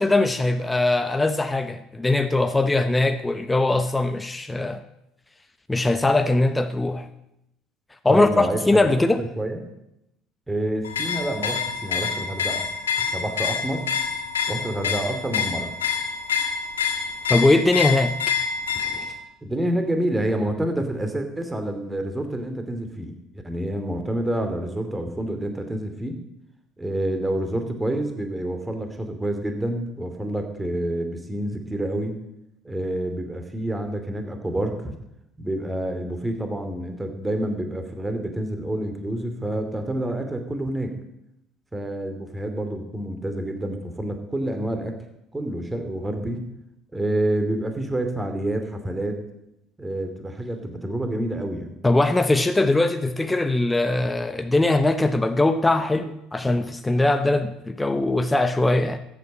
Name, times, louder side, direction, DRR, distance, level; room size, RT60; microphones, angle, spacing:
voice 1, 0.0-4.8 5.7-7.1 8.0-9.2 17.3-18.2 51.8-59.0, left 2 dB, 15° left, 8 dB, 1.0 m, -21 dB
voice 2, 8.1-9.6 10.5-12.7 13.0-13.8 14.5-15.7 18.7-19.1 19.4-23.2 23.4-26.2 26.8-32.1 32.6-34.9 35.4-40.9 41.7-45.0 45.3-46.4 46.9-49.2 49.8-51.8, right 1 dB, 15° right, 6 dB, 2.7 m, -28 dB
sound 1, 10.8-19.2, left 6 dB, 90° left, 1.7 m, -27 dB
14.0 x 8.8 x 7.5 m, 0.84 s
hypercardioid pair, 65°, 0 cm